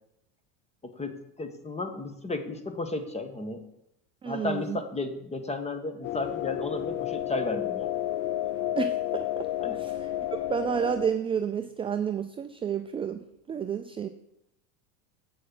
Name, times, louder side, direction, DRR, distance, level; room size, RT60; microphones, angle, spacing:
voice 1, 0.8-3.6 4.2-7.9 9.6-9.8, left 2 dB, 15° left, 8 dB, 1.3 m, -33 dB
voice 2, 4.2-4.8 8.8-9.5 9.8-10.1 10.5-13.2 13.5-14.1, right 7 dB, 15° right, 8 dB, 0.3 m, -30 dB
sound 1, 6.0-11.1, left 13 dB, 45° left, 0.6 m, -31 dB
7.7 x 6.4 x 7.6 m, 0.82 s
supercardioid pair, 110°, 42 cm